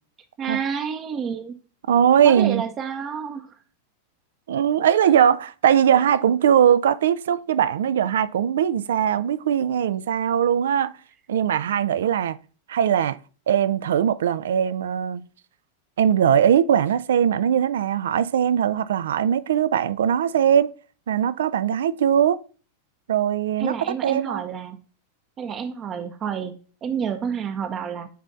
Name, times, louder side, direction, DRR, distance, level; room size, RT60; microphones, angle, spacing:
voice 1, 0.4-1.5 2.2-3.5 23.6-24.8 25.4-28.1, right 7 dB, 30° right, 0.7 m, -29 dB
voice 2, 1.9-2.6 4.5-10.9 11.3-12.4 12.7-13.2 13.5-15.2 16.0-20.7 21.1-22.4 23.1-23.7 24.0-24.4, right 9 dB, 60° right, 0.4 m, -20 dB
9.2 x 4.3 x 2.5 m
figure-of-eight pair, 90°, 0 cm